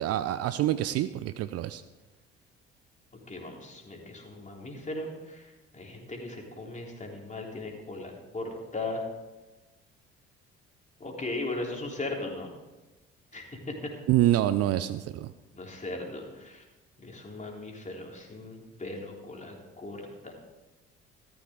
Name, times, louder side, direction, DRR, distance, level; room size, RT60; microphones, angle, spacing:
voice 1, 0.0-1.8 14.1-15.3, right 13 dB, 50° right, 14 dB, 0.6 m, -26 dB
voice 2, 3.3-9.1 11.0-12.5 13.3-13.9 15.5-16.6 17.0-20.3, left 2 dB, 20° left, 0 dB, 3.5 m, -38 dB
14.5 x 13.5 x 3.8 m, 1.1 s
figure-of-eight pair, 50°, 33 cm